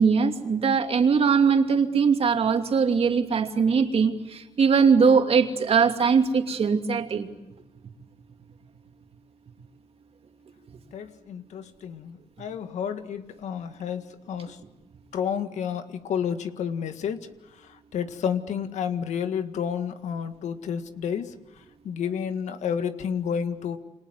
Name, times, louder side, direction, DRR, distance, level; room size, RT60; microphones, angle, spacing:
voice 1, 0.0-7.3, right 6 dB, 55° right, 5 dB, 2.7 m, -21 dB
voice 2, 10.9-14.6 15.1-17.3 17.9-21.3 21.8-23.8, left 7 dB, 85° left, 9 dB, 1.8 m, -30 dB
28.5 x 26.0 x 8.1 m, 1.0 s
cardioid pair, 80°, 12 cm